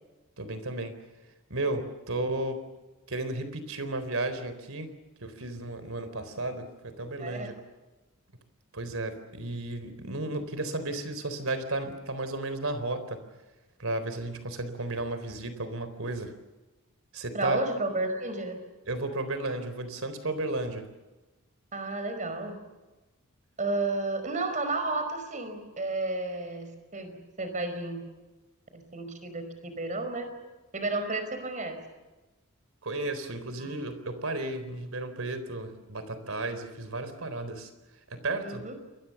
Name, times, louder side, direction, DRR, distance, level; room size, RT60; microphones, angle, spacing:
voice 1, 0.4-0.9 1.5-2.6 3.1-4.9 5.2-7.6 8.7-13.2 13.8-16.3 17.1-17.6 18.9-20.9 32.8-37.7 38.1-38.7, right 2 dB, 65° right, 11 dB, 4.0 m, -33 dB
voice 2, 7.2-7.5 17.3-18.6 21.7-22.6 23.6-28.0 28.7-30.3 30.7-31.8 33.6-33.7 38.4-38.7, right 2 dB, 35° right, 9 dB, 5.1 m, -32 dB
28.5 x 23.0 x 7.2 m, 1.1 s
head